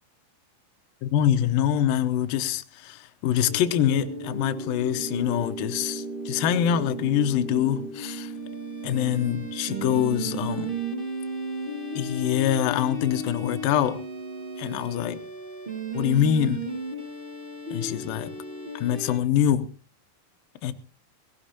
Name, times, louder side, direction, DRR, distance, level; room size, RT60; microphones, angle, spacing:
voice 1, 1.0-8.3 8.8-10.7 12.0-14.0 14.6-15.2 15.9-16.6 17.7-18.3 18.7-19.7 20.6-20.7, left 10 dB, 80° left, 2.1 m, -25 dB
sound 1, 3.4-19.2, right 2 dB, 35° right, 0.8 m, -35 dB
18.0 x 17.5 x 2.9 m
omnidirectional pair, 5.1 m